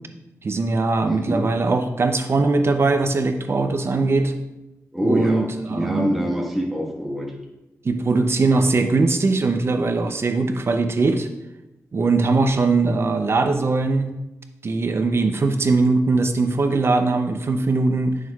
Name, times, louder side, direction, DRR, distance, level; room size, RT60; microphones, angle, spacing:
voice 1, 0.4-4.3 5.0-6.2 7.8-11.3 11.9-14.1 14.6-18.2, right 3 dB, 50° right, 7 dB, 0.6 m, -20 dB
voice 2, 1.1-1.4 4.9-7.3, equal, ahead, -1 dB, 1.3 m, -25 dB
9.2 x 6.3 x 2.3 m, 0.97 s
wide cardioid pair, 90°, 5 cm